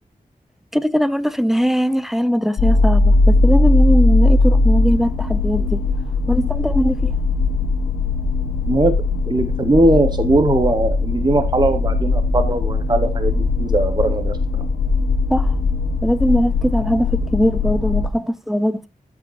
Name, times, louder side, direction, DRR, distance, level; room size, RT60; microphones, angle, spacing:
voice 1, 0.7-5.8 6.3-7.1 15.3-15.5 16.0-18.9, equal, ahead, 0.5 m, -20 dB
sound 1, 2.6-18.1, left 3 dB, 85° left, 0.8 m, -19 dB
voice 2, 9.3-14.6, right 2 dB, 30° right, 0.8 m, -19 dB
13.5 x 5.0 x 3.1 m
wide cardioid pair, 90°, 15 cm